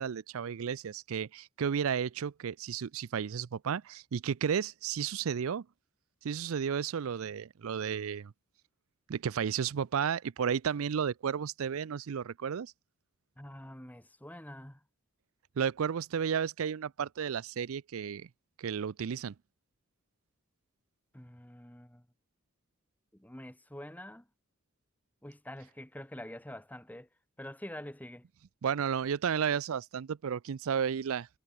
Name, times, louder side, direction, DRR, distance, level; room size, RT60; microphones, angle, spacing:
voice 1, 0.0-5.6 6.2-8.3 9.1-12.7 15.6-18.3 18.6-19.3 28.6-31.3, right 7 dB, 70° right, 0.4 m, -33 dB
voice 2, 13.4-14.8 21.1-22.0 23.2-24.2 25.2-27.1 27.4-28.2, left 1 dB, 5° left, 1.3 m, -46 dB
head